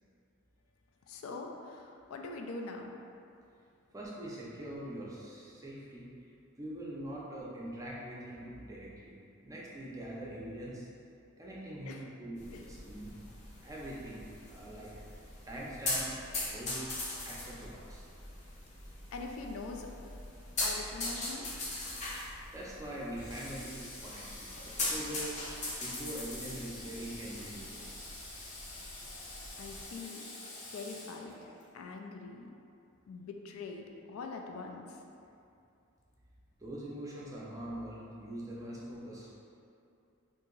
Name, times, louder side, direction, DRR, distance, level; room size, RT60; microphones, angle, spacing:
voice 1, 1.1-2.9 11.9-12.1 12.5-12.6 19.1-19.9 20.6-21.5 29.6-30.2 30.7-32.5 33.1-35.0, left 3 dB, 85° left, 2 dB, 0.3 m, -43 dB
voice 2, 3.9-6.1 6.6-9.1 9.4-10.9 11.4-13.2 13.6-14.9 15.4-16.2 16.5-17.0 17.2-18.1 22.5-25.3 25.8-28.1 36.6-39.4, right 1 dB, 15° right, -5 dB, 0.5 m, -43 dB
sound 1, 12.4-29.8, left 2 dB, 35° left, 0.6 m, -41 dB
Water / Water tap faucet, 23.2-31.7, left 2 dB, 65° left, 0.8 m, -47 dB
2.8 x 2.5 x 3.8 m, 2.6 s
head